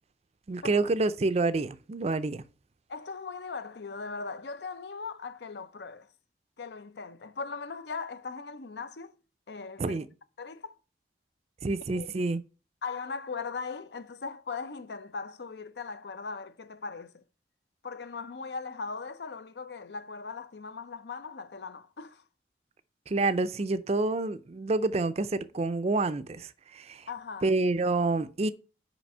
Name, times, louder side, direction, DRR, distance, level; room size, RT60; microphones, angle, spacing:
voice 1, 0.5-2.4 9.8-10.1 11.6-12.4 23.1-27.1 27.4-28.5, right 3 dB, 35° right, 0.4 m, -28 dB
voice 2, 2.9-6.1 6.6-9.2 9.5-10.0 10.4-10.8 11.9-12.1 12.8-17.2 17.8-22.2 27.1-27.5, left 4 dB, 70° left, 0.6 m, -39 dB
6.0 x 5.0 x 5.4 m
head